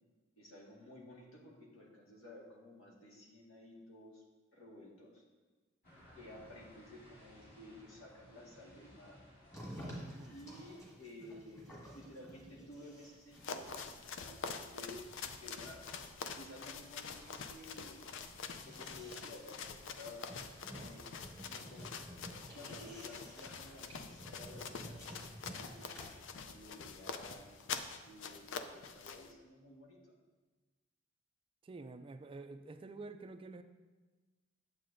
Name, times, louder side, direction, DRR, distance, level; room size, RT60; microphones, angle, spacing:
voice 1, 0.4-4.2 4.5-5.2 6.2-9.2 10.3-11.7 11.9-14.0 14.2-15.1 15.4-15.9 16.4-18.0 18.6-21.1 21.4-21.9 22.5-25.0 25.4-30.2, left 1 dB, 85° left, -2 dB, 1.7 m, -54 dB
sound 1, 5.8-10.8, equal, 50° left, 2.3 m, -60 dB
sound 2, 9.5-26.1, equal, 15° left, 1.7 m, -53 dB
voice 2, 10.0-10.3 31.6-33.6, right 3 dB, 25° right, 9 dB, 0.3 m, -49 dB
sound 3, 13.3-29.3, left 5 dB, 65° left, 0.5 m, -46 dB
9.3 x 7.5 x 2.6 m, 1.3 s
head